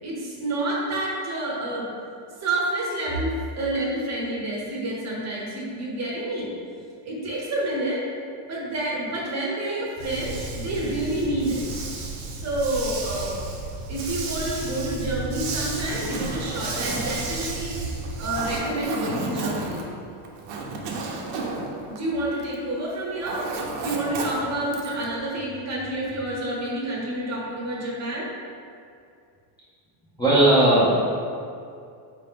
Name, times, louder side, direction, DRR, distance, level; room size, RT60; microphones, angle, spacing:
voice 1, 0.0-1.9 2.4-6.5 7.0-8.1 8.5-11.6 12.4-13.4 13.9-17.8 18.2-19.9 21.9-23.5 23.8-28.3, right 1 dB, 35° right, -3 dB, 0.8 m, -28 dB
Dog, 10.0-18.6, right 3 dB, 90° right, 1.0 m, -33 dB
Zipper (clothing), 15.7-22.7 23.0-25.1, right 3 dB, 65° right, 0.8 m, -33 dB
voice 2, 30.2-31.0, right 1 dB, 10° left, -10 dB, 0.6 m, -17 dB
4.5 x 2.9 x 3.5 m, 2.4 s
cardioid pair, 135°, 49 cm